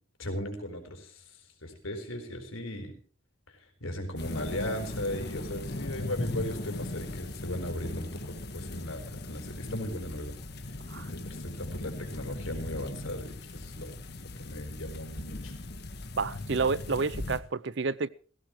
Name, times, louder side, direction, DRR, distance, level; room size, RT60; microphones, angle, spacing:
voice 1, 0.2-1.2 1.6-2.9 3.5-10.3 11.1-14.0 14.4-15.5, left 1 dB, 85° left, 4.3 m, -37 dB
sound 1, 4.2-17.4, left 2 dB, 55° left, 1.4 m, -39 dB
voice 2, 16.2-18.1, right 4 dB, 60° right, 0.6 m, -29 dB
18.5 x 16.0 x 3.1 m
head